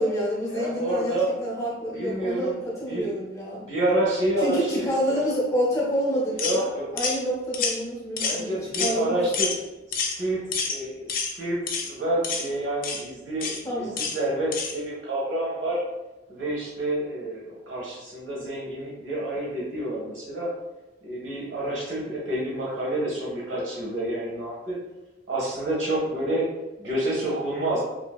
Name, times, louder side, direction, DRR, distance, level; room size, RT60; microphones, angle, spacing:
voice 1, 0.0-3.6 4.4-9.3 13.6-14.0, equal, 15° left, -6 dB, 0.7 m, -28 dB
voice 2, 0.5-1.3 1.9-2.5 2.9-3.1 3.6-5.2 6.4-6.9 8.2-9.5 9.9-15.8 16.3-20.5 21.0-24.8 25.3-26.5 26.8-27.8, right 1 dB, 65° right, -5 dB, 1.0 m, -28 dB
sound 1, 6.4-6.6 7.0-7.2 7.5-7.8 8.2-8.4 8.7-9.0 9.3-9.6 9.9-10.2 10.5-10.8 11.1-11.3 11.7-11.9 12.2-12.5 12.8-13.0 13.4-13.6 14.0-14.2 14.5-14.7, left 5 dB, 45° left, 0.3 m, -28 dB
2.7 x 2.6 x 2.3 m, 1.1 s
head